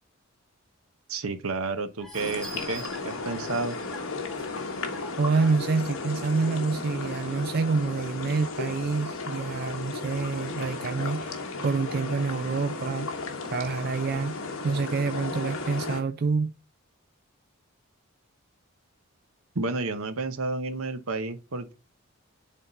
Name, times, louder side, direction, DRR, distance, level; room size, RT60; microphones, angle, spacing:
voice 1, 1.1-3.8 19.5-21.8, right 3 dB, 75° right, 0.9 m, -31 dB
sound 1, 2.0-6.5 7.0-7.1 7.4-7.5, right 1 dB, 5° left, 1.2 m, -45 dB
sound 2, 2.1-16.0, left 3 dB, 70° left, 1.3 m, -34 dB
voice 2, 5.2-11.4 11.6-13.1 13.5-14.4 14.6-16.5, right 4 dB, 45° right, 0.3 m, -27 dB
8.3 x 3.7 x 3.9 m
head